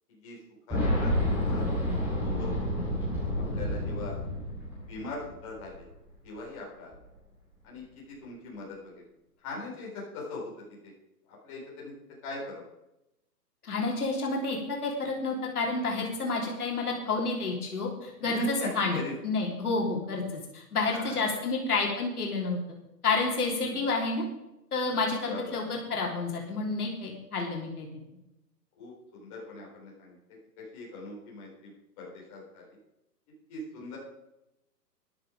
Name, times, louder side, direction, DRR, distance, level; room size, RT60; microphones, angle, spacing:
voice 1, 0.7-1.1 1.4-1.7 2.2-2.5 3.3-4.2 4.9-5.7 6.2-6.9 7.6-8.9 9.4-10.5 11.4-11.9 12.2-12.6 18.3-19.1 20.9-21.2 23.6-23.8 25.3-25.6 28.8-30.1 30.6-31.7 32.0-32.6 33.5-34.0, left 2 dB, 20° left, -4 dB, 4.0 m, -40 dB
Boom, 0.7-5.5 5.7-5.8 6.9-7.0, left 1 dB, 5° right, 2.5 m, -29 dB
voice 2, 13.6-22.6 23.0-24.2 24.7-27.9, left 3 dB, 60° left, -1 dB, 3.6 m, -30 dB
13.5 x 11.0 x 5.1 m, 0.90 s
hypercardioid pair, 175°, 50 cm